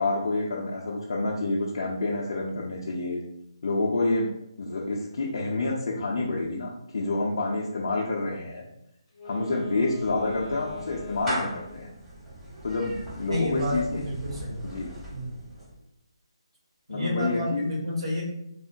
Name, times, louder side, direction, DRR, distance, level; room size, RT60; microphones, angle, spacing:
voice 1, 0.0-3.2 3.6-4.3 4.6-8.6 9.2-11.9 12.6-14.0 14.6-14.9 16.9-17.7, left 2 dB, 60° left, -3 dB, 0.5 m, -28 dB
Wind instrument woodwind instrument, 9.1-12.0, left 2 dB, 15° left, 0.7 m, -42 dB
Clapping / Meow, 9.4-15.8, equal, 15° right, 1.1 m, -39 dB
voice 2, 13.3-14.7 15.1-15.4 16.9-18.2, left 1 dB, 75° right, -3 dB, 1.3 m, -30 dB
3.7 x 2.0 x 2.5 m, 0.81 s
figure-of-eight pair, 155°, 3 cm